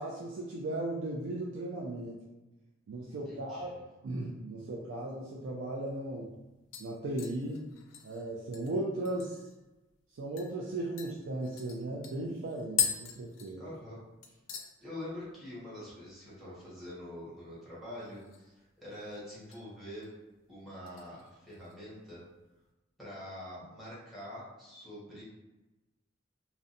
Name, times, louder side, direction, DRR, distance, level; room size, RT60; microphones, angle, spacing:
voice 1, 0.0-2.2 2.9-3.7 4.0-6.3 6.8-7.7 8.0-9.5 10.1-13.7, right 1 dB, 70° right, -3 dB, 0.3 m, -36 dB
voice 2, 3.1-3.8 13.6-14.0 14.8-18.5 18.8-20.1 20.5-22.2 23.0-25.2, left 1 dB, ahead, -9 dB, 1.0 m, -45 dB
sound 1, 5.6-5.7 6.1-6.4 6.7-9.6 9.9-10.0 10.4-10.5 11.0-14.0 14.2-14.7 15.1-15.5 15.7-15.8 17.9-18.6 18.9-19.6 20.0-20.3 20.9-21.8 22.1-22.2, left 9 dB, 75° left, 0.4 m, -39 dB
2.6 x 2.1 x 2.5 m, 1.1 s
head